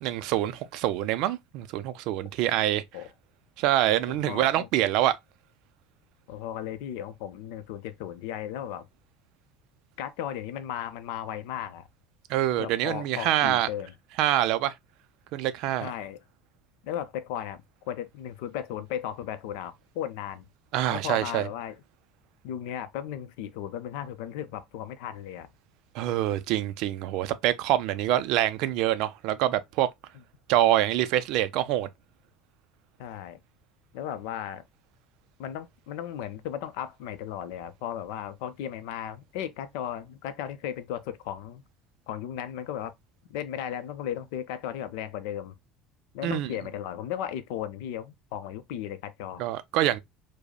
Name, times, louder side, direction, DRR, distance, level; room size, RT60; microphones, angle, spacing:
voice 1, 0.0-2.8 3.6-5.2 12.3-13.7 14.2-14.7 15.3-15.9 20.7-21.5 25.9-29.9 30.5-31.9 46.2-46.5 49.4-50.0, right 13 dB, 55° right, 0.3 m, -25 dB
voice 2, 4.1-4.7 6.3-8.9 10.0-11.8 12.6-13.9 15.8-16.2 16.8-20.4 20.9-21.8 22.4-25.5 33.0-33.4 33.9-34.6 35.4-41.6 42.1-42.9 43.3-45.5 46.1-49.5, left 10 dB, 70° left, 0.5 m, -36 dB
5.0 x 2.0 x 2.2 m
cardioid pair, 180°, 0 cm